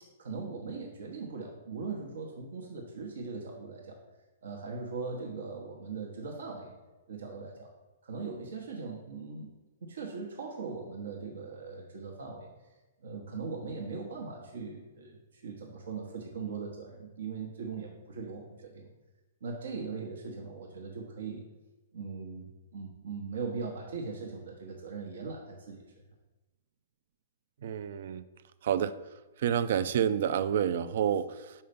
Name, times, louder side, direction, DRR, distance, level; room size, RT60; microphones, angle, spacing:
voice 1, 0.2-4.0 4.4-6.7 7.1-7.7 8.0-9.5 9.8-12.5 13.0-18.9 19.4-21.4 21.9-22.5 22.7-25.8, right 4 dB, 80° right, 0 dB, 1.0 m, -40 dB
voice 2, 27.6-28.2 28.6-28.9 29.4-31.5, right 9 dB, 65° right, 14 dB, 0.4 m, -29 dB
5.5 x 4.3 x 5.1 m, 1.2 s
hypercardioid pair, 140°, 0 cm